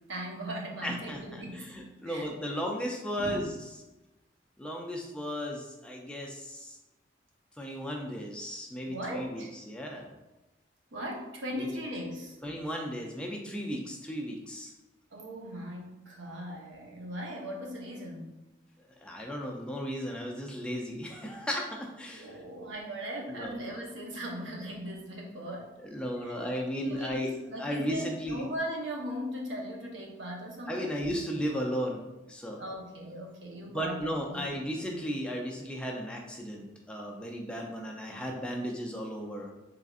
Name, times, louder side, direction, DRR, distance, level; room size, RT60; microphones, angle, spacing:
voice 1, 0.0-1.7 2.1-2.3 3.2-3.4 8.8-9.5 10.9-12.4 15.1-18.4 22.1-25.7 26.2-26.3 26.8-30.9 32.6-34.5, equal, 80° right, -1 dB, 0.8 m, -38 dB
voice 2, 0.8-3.6 4.6-6.8 7.6-10.1 11.5-11.8 12.4-14.7 19.0-22.4 23.3-23.8 25.8-27.3 27.6-28.5 30.7-32.6 33.7-39.5, equal, 5° left, 0 dB, 0.4 m, -35 dB
3.7 x 3.4 x 2.4 m, 1.0 s
head